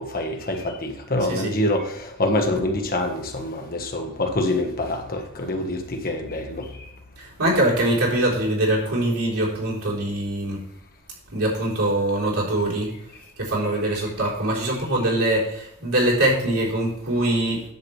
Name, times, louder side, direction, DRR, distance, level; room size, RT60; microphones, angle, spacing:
voice 1, 0.0-1.9 2.2-6.6, left 1 dB, 40° left, 4 dB, 1.3 m, -25 dB
voice 2, 7.2-10.6 11.3-12.9 13.4-17.6, right 1 dB, 70° right, -5 dB, 3.9 m, -23 dB
10.5 x 8.0 x 3.3 m, 0.78 s
head